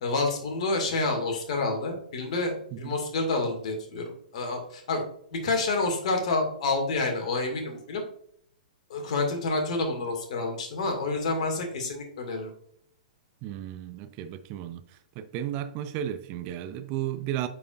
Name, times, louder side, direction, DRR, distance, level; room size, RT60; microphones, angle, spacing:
voice 1, 0.0-5.0 5.3-8.0 8.9-12.5, left 3 dB, 50° left, 2.1 m, -28 dB
voice 2, 13.4-14.8 15.2-17.5, right 11 dB, 35° right, 0.5 m, -34 dB
9.5 x 4.8 x 2.5 m
figure-of-eight pair, 110°, 4 cm